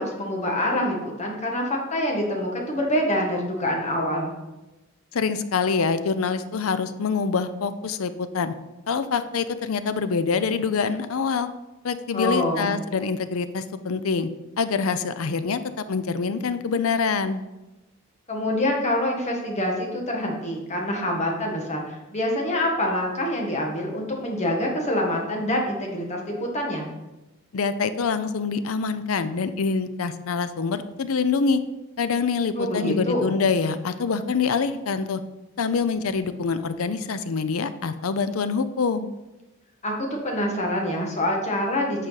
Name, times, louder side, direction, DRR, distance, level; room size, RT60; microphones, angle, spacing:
voice 1, 0.0-4.3 12.1-12.7 18.3-26.8 32.5-33.3 39.8-42.1, left 1 dB, 35° left, 0 dB, 1.5 m, -26 dB
voice 2, 5.1-8.5 8.9-11.5 11.8-14.3 14.6-15.6 15.9-17.4 27.5-31.6 32.0-35.2 35.6-39.1, left 5 dB, 75° left, 12 dB, 0.5 m, -25 dB
8.8 x 5.0 x 3.9 m, 1.0 s
head